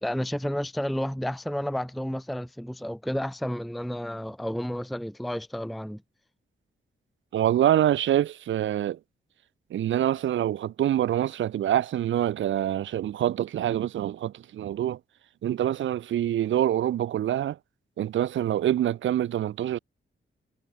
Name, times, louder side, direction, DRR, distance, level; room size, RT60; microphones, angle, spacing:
voice 1, 0.0-6.0, equal, ahead, 0.6 m, -31 dB
voice 2, 7.3-9.0 9.7-15.0 15.4-17.6 18.0-19.8, right 11 dB, 70° right, 0.5 m, -25 dB
wide cardioid pair, 155°, 21 cm